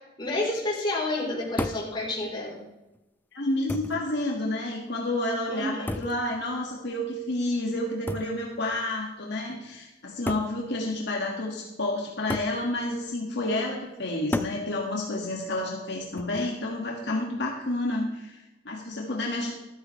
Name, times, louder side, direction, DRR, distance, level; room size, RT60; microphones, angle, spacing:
voice 1, 0.2-2.6 5.5-5.9, left 2 dB, 25° left, -3 dB, 3.9 m, -29 dB
sound 1, 1.6-1.9 2.9-3.0 3.7-4.1 5.9-6.2 8.1-8.4 9.4-9.5 10.3-10.6 12.3-12.6 14.3-14.6 16.2-16.6, left 1 dB, 10° left, 0.4 m, -32 dB
voice 2, 3.3-19.5, left 1 dB, 65° left, -1 dB, 1.9 m, -30 dB
13.5 x 13.5 x 3.3 m, 0.97 s
head